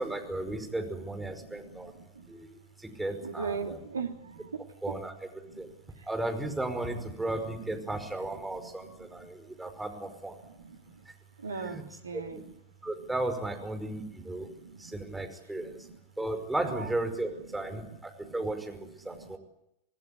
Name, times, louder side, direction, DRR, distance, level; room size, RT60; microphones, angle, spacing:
voice 1, 0.0-1.9 2.3-2.5 2.8-3.8 4.8-5.3 5.6-5.7 6.0-10.4 11.6-11.8 12.1-12.4 12.8-14.5 14.8-15.9 16.2-19.4, right 2 dB, 5° right, 5 dB, 5.2 m, -35 dB
voice 2, 1.4-2.3 3.2-5.0 5.5-6.1 8.5-9.3 10.5-11.0 11.4-12.4 13.8-15.1 15.6-15.9 16.7-16.9 17.7-17.8 18.2-18.3 19.1-19.4, right 5 dB, 70° right, 5 dB, 2.7 m, -41 dB
27.0 x 19.0 x 9.8 m, 0.84 s
figure-of-eight pair, 90°, 0 cm